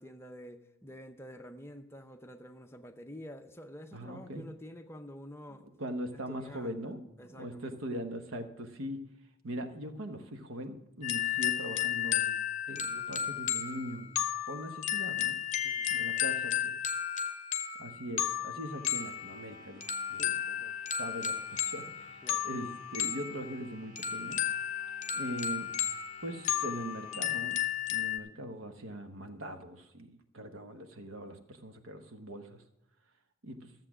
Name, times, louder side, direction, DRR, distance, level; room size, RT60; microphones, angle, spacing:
voice 1, 0.0-5.7 6.1-7.8 15.6-15.9 20.2-20.8 22.2-22.5, equal, 10° left, 0.6 m, -49 dB
voice 2, 3.9-4.5 5.8-7.0 7.3-9.1 9.4-12.4 12.7-14.1 14.5-15.4 15.9-16.7 17.8-19.8 20.1-20.3 21.0-24.4 25.1-25.7 26.2-32.6 33.4-33.7, right 1 dB, 80° right, 1.1 m, -41 dB
sound 1, 11.0-28.2, left 10 dB, 35° left, 0.8 m, -33 dB
sound 2, 18.6-27.4, equal, 45° right, 5.2 m, -56 dB
13.5 x 7.5 x 6.1 m
head